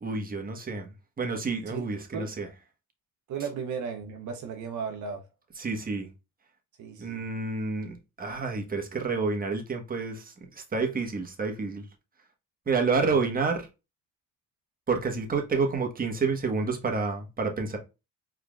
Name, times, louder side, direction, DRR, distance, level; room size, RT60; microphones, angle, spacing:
voice 1, 0.0-0.9 1.2-2.5 5.6-6.1 7.0-11.8 12.7-13.6 14.9-17.8, right 4 dB, 30° right, 1.3 m, -29 dB
voice 2, 3.3-5.2 6.8-7.2 13.0-13.2, right 6 dB, 75° right, 0.9 m, -35 dB
4.5 x 3.6 x 2.4 m
cardioid pair, 90°, 30 cm